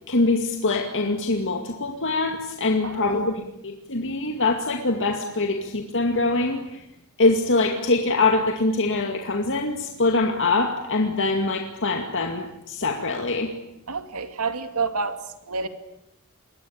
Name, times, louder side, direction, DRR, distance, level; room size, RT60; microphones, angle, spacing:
voice 1, 0.1-6.8 7.2-13.5, left 3 dB, 60° left, 3 dB, 2.2 m, -23 dB
voice 2, 2.8-3.2 13.9-15.2 15.5-15.7, right 4 dB, 80° right, 8 dB, 2.6 m, -28 dB
27.0 x 22.0 x 8.8 m, 0.83 s
head